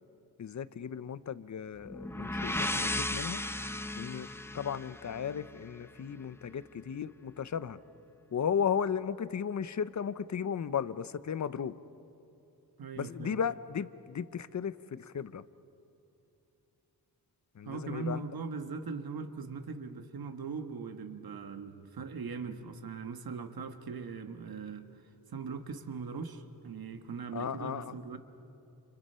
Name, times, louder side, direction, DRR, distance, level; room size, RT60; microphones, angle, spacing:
voice 1, 0.4-3.4 4.0-4.3 4.5-7.8 8.3-11.8 13.0-15.4 17.6-18.2 27.3-27.9, left 7 dB, 45° left, 16 dB, 0.6 m, -35 dB
sound 1, 1.9-5.7, left 1 dB, 5° left, 0.7 m, -35 dB
voice 2, 12.8-13.4 17.6-24.9 25.3-28.2, right 5 dB, 65° right, 8 dB, 1.5 m, -40 dB
30.0 x 29.0 x 5.6 m, 2.9 s
wide cardioid pair, 165°, 39 cm